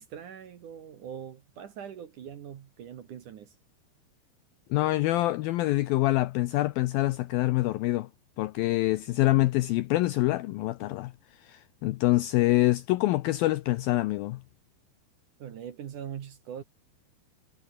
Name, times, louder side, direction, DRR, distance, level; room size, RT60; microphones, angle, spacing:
voice 1, 0.0-3.6 15.4-16.6, right 9 dB, 55° right, 2.6 m, -42 dB
voice 2, 4.7-8.1 8.4-11.1 11.4-14.4, left 17 dB, 80° left, 2.1 m, -25 dB
omnidirectional pair, 5.0 m